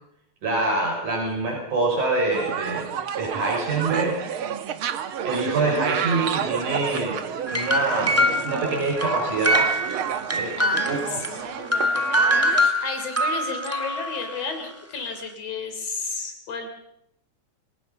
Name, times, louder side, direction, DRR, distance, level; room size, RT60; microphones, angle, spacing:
voice 1, 0.4-2.9 3.2-4.2 5.2-7.2 7.5-9.7 10.3-10.5 10.8-11.0, right 3 dB, 80° right, -1 dB, 7.4 m, -25 dB
sound 1, 2.3-12.7, right 8 dB, 55° right, 1.7 m, -30 dB
sound 2, 7.5-11.3 11.7-14.4, equal, 10° right, 0.9 m, -24 dB
voice 2, 10.6-16.7, left 4 dB, 55° left, 6 dB, 4.6 m, -33 dB
29.5 x 18.5 x 5.6 m, 0.78 s
omnidirectional pair, 3.4 m